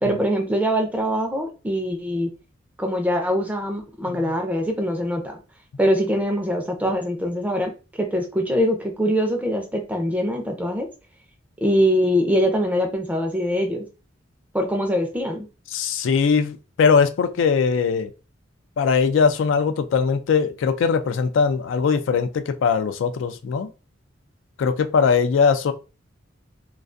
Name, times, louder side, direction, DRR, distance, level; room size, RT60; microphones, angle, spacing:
voice 1, 0.0-2.3 2.8-5.4 5.8-7.7 8.0-10.9 11.6-13.9 14.5-15.5, equal, 10° right, 0.4 m, -23 dB
voice 2, 15.7-18.1 18.8-23.7 24.6-25.7, left 5 dB, 70° left, 0.3 m, -20 dB
2.4 x 2.3 x 2.5 m
head